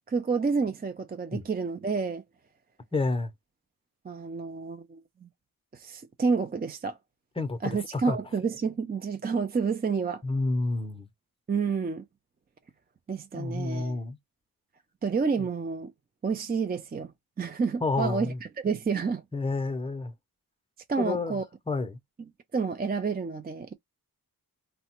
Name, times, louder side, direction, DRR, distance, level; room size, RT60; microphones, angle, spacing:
voice 1, 0.1-2.2 4.0-5.3 5.7-7.0 7.6-10.2 11.5-12.0 13.1-14.0 15.0-15.9 16.2-17.1 17.4-19.2 20.9-21.4 22.2-23.7, right 5 dB, 25° right, 0.4 m, -29 dB
voice 2, 2.9-3.3 7.4-8.2 10.2-11.1 13.3-14.2 17.8-18.4 19.3-20.1 21.0-21.4 21.7-22.0, left 3 dB, 15° left, 0.6 m, -29 dB
3.2 x 2.1 x 2.9 m
wide cardioid pair, 60°, 37 cm